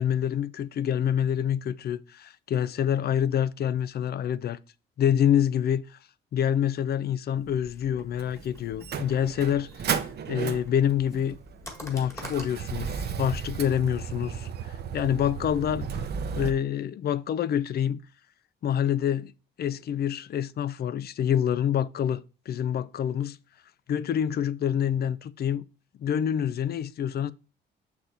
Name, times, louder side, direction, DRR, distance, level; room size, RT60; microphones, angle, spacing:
voice 1, 0.0-4.6 5.0-5.8 6.3-9.7 10.3-11.4 11.8-14.5 14.9-15.9 16.3-18.0 18.6-19.3 19.6-23.4 23.9-25.6 26.0-27.3, left 9 dB, 55° left, 0.4 m, -26 dB
sound 1, 7.3-12.6, left 1 dB, 15° left, 1.6 m, -47 dB
Motor vehicle (road), 8.2-16.5, right 7 dB, 55° right, 0.7 m, -34 dB
6.3 x 6.1 x 2.7 m
cardioid pair, 90°, 20 cm